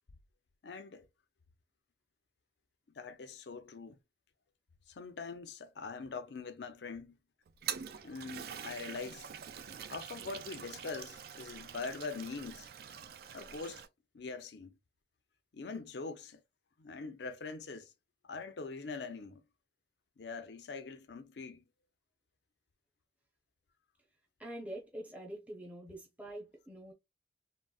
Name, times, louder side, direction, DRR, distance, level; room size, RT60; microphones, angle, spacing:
voice 1, 0.6-1.1 2.9-4.0 4.9-7.2 8.0-9.3 9.9-12.7 13.3-13.8 14.1-14.8 15.5-16.4 16.8-17.9 18.2-19.4 20.2-21.6, left 4 dB, 70° left, 0.5 m, -43 dB
Toilet flush, 7.5-13.9, right 8 dB, 55° right, 0.3 m, -45 dB
voice 2, 24.4-26.9, right 1 dB, 10° right, 0.6 m, -45 dB
3.7 x 2.1 x 2.3 m
head